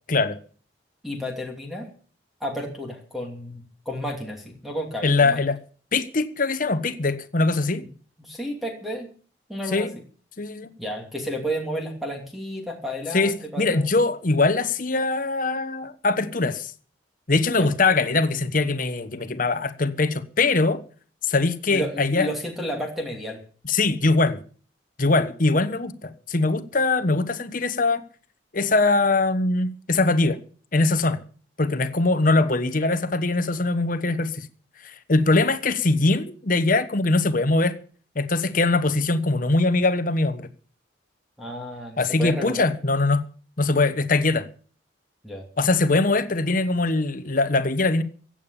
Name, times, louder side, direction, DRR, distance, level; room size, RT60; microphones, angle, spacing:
voice 1, 1.0-1.9 2.4-5.4 8.2-9.1 9.5-9.9 10.8-14.0 17.6-17.7 21.7-23.4 41.4-42.7 45.2-45.4, equal, ahead, 2.6 m, -32 dB
voice 2, 5.0-5.6 5.9-7.8 9.7-9.9 10.4-10.7 13.1-16.7 17.3-20.8 21.2-22.3 23.7-24.4 25.0-28.0 28.5-30.4 30.7-31.2 31.6-34.5 34.8-37.8 38.1-40.5 42.0-43.2 43.6-44.5 45.6-48.0, left 3 dB, 45° left, 1.1 m, -22 dB
16.0 x 8.7 x 7.1 m
head